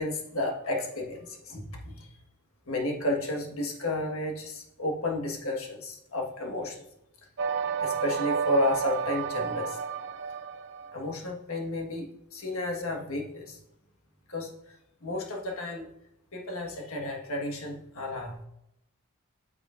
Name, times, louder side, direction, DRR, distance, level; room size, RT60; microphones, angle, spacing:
voice 1, 0.0-2.2 2.7-6.8 7.8-9.8 10.9-13.6 14.3-14.7 15.0-15.9 16.3-18.5, left 1 dB, 80° left, 0 dB, 1.5 m, -32 dB
sound 1, 7.4-11.0, right 7 dB, 55° right, 0.4 m, -31 dB
9.1 x 6.8 x 2.5 m, 0.82 s
head